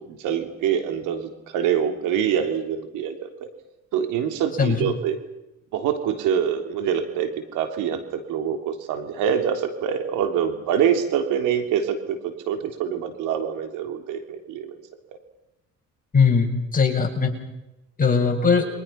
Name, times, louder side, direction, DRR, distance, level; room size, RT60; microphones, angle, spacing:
voice 1, 0.1-3.5 3.9-5.2 5.7-14.8, right 8 dB, 80° right, 6 dB, 3.5 m, -25 dB
voice 2, 16.1-17.3 18.0-18.7, left 5 dB, 25° left, 1 dB, 7.2 m, -19 dB
29.5 x 25.0 x 5.9 m, 0.93 s
cardioid pair, 100°, 31 cm